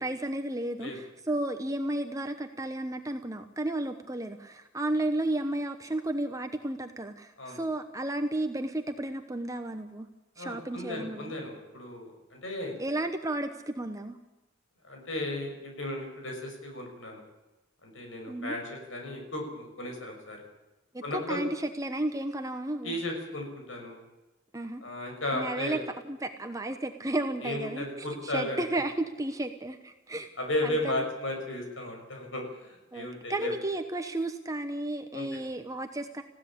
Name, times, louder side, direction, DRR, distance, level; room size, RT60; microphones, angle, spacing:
voice 1, 0.0-10.1 10.4-11.3 12.8-14.2 18.3-18.5 20.9-22.9 24.5-24.8 25.3-25.8 26.0-30.3 30.6-31.0 32.9-36.2, right 1 dB, 15° right, 6 dB, 1.0 m, -33 dB
voice 2, 10.4-12.7 14.8-17.2 17.8-20.4 21.0-21.4 22.8-24.0 24.8-25.8 27.4-28.6 30.4-33.5 35.1-35.4, left 1 dB, 80° left, 2 dB, 6.1 m, -35 dB
21.0 x 16.0 x 8.6 m, 1.0 s
head